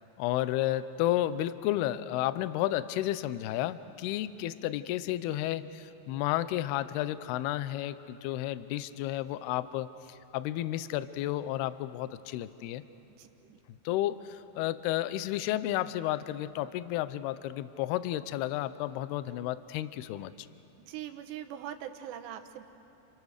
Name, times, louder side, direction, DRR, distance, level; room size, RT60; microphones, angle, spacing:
voice 1, 0.2-12.8 13.9-20.5, left 14 dB, 80° left, 14 dB, 2.6 m, -32 dB
voice 2, 13.2-13.6 20.8-22.6, right 10 dB, 80° right, 6 dB, 3.3 m, -42 dB
29.5 x 29.5 x 6.6 m, 2.8 s
omnidirectional pair, 5.0 m